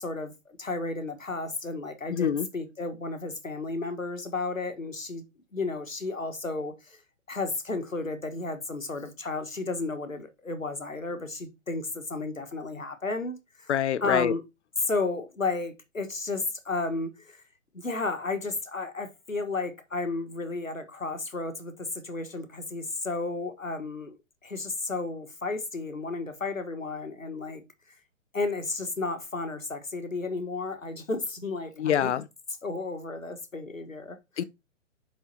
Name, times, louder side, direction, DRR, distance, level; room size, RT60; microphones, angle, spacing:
voice 1, 0.0-5.2 5.5-7.0 7.3-13.7 14.0-14.4 14.8-17.4 17.7-24.1 24.4-27.6 28.3-32.1 32.6-34.4, left 3 dB, 90° left, 1.4 m, -33 dB
voice 2, 2.1-2.5 13.7-14.3 31.8-32.2 34.4-34.5, left 9 dB, 60° left, 0.6 m, -25 dB
7.6 x 5.5 x 2.8 m
figure-of-eight pair, 125°, 39 cm